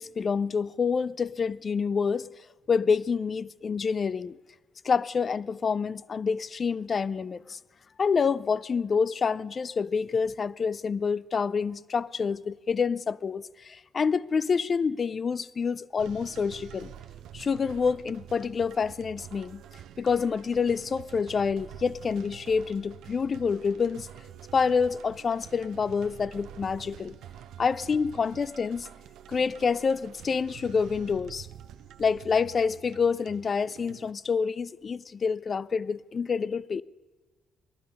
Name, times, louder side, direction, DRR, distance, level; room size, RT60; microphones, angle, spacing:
voice 1, 0.0-2.3 2.7-4.4 4.8-7.6 8.0-16.9 17.3-19.6 20.0-24.1 24.5-27.2 27.6-28.9 29.3-31.5 32.0-36.8, left 5 dB, 40° left, 0.4 m, -27 dB
sound 1, 16.0-34.1, right 10 dB, 80° right, 0.6 m, -47 dB
19.0 x 12.0 x 5.3 m
cardioid pair, 90°, 0 cm